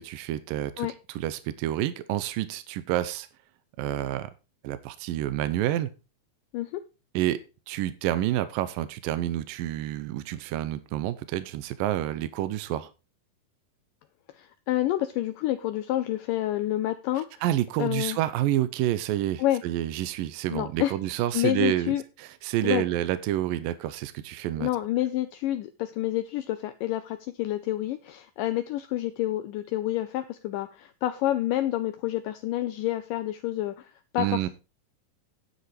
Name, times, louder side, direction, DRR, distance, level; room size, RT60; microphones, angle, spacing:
voice 1, 0.0-3.3 3.8-4.3 4.6-5.9 7.1-12.9 17.4-21.9 22.2-24.7 34.2-34.5, right 13 dB, 80° right, 2.4 m, -29 dB
voice 2, 14.3-17.4 17.8-18.2 19.4-19.6 20.5-20.9 21.3-22.0 22.6-22.8 24.6-34.5, left 14 dB, 75° left, 2.2 m, -28 dB
10.0 x 8.2 x 4.8 m
omnidirectional pair, 4.2 m